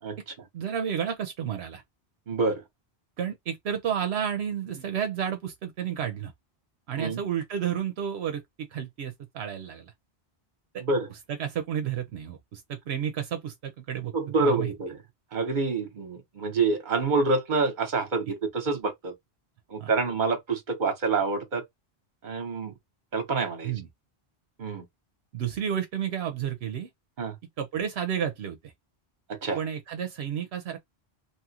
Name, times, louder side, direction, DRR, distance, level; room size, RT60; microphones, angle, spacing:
voice 1, 0.5-1.8 3.2-6.3 6.9-9.9 10.7-10.8 11.3-14.1 14.4-14.7 19.8-19.9 23.6-23.9 25.3-26.9 27.6-28.7 29.5-30.8, right 8 dB, 80° right, 0.9 m, -31 dB
voice 2, 2.3-2.6 7.0-7.2 10.8-11.1 14.1-15.0 15.3-19.1 19.7-21.6 22.2-22.7 23.1-23.7 24.6-24.8 27.2-27.3 29.3-29.6, right 3 dB, 50° right, 1.1 m, -27 dB
3.0 x 2.4 x 2.8 m
omnidirectional pair, 1.1 m